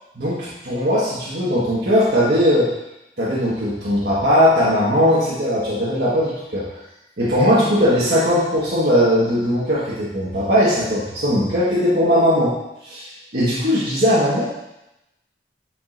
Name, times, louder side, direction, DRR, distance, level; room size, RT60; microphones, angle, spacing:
voice 1, 0.2-2.7 3.2-6.7 7.2-12.5 12.8-14.4, equal, 65° right, -10 dB, 1.6 m, -19 dB
9.0 x 5.3 x 2.6 m, 0.91 s
head